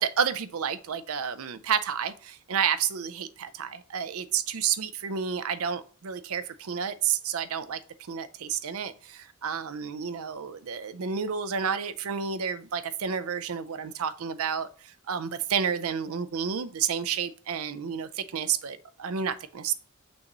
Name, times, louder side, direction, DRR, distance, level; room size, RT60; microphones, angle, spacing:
voice 1, 0.0-7.8 8.1-19.7, right 7 dB, 70° right, 0.5 m, -30 dB
6.2 x 3.0 x 5.2 m
head